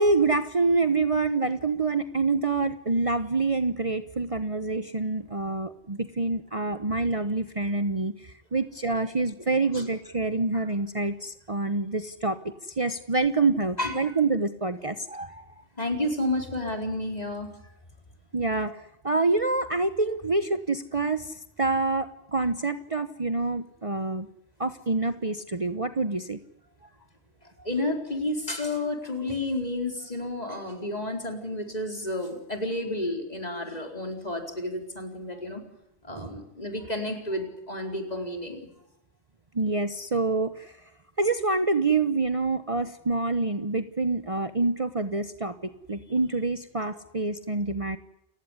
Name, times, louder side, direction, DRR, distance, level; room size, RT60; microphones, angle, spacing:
voice 1, 0.0-12.4 12.7-15.5 18.3-24.3 24.6-26.4 36.1-36.3 39.5-40.7 41.2-48.0, right 3 dB, 35° right, 10 dB, 1.0 m, -27 dB
voice 2, 13.8-14.1 15.8-17.5 26.8-26.9 27.6-35.6 36.0-38.7, left 1 dB, 40° left, 4 dB, 4.5 m, -31 dB
29.5 x 16.0 x 10.0 m, 0.87 s
omnidirectional pair, 1.1 m